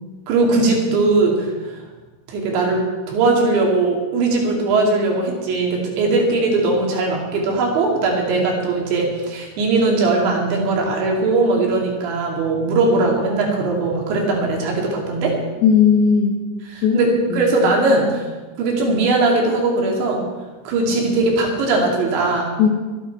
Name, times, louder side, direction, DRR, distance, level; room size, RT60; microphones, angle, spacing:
voice 1, 0.3-1.8 2.3-15.4 16.7-18.3 18.6-20.3 20.7-22.5, right 3 dB, 65° right, 0 dB, 4.3 m, -19 dB
voice 2, 15.6-16.4 16.8-17.7 22.6-22.7, left 6 dB, 60° left, -1 dB, 2.9 m, -17 dB
24.5 x 9.1 x 4.5 m, 1.2 s
omnidirectional pair, 5.9 m